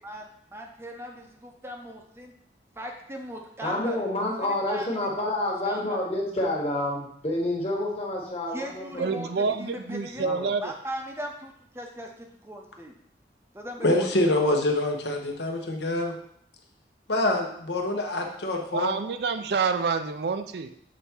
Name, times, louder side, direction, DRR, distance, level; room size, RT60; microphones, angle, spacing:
voice 1, 0.5-2.3 2.8-4.0 4.7-4.9 5.2-5.3 5.6-6.0 8.5-10.3 10.6-13.0 13.5-14.2, equal, 15° right, 2 dB, 0.6 m, -38 dB
voice 2, 3.6-9.5 10.1-10.5, left 1 dB, 35° left, -2 dB, 1.3 m, -29 dB
voice 3, 9.0-10.7 18.7-20.7, right 5 dB, 65° right, 8 dB, 0.4 m, -28 dB
voice 4, 13.8-16.2 17.1-18.9, left 1 dB, 75° left, 2 dB, 1.0 m, -25 dB
7.2 x 3.4 x 4.4 m, 0.69 s
head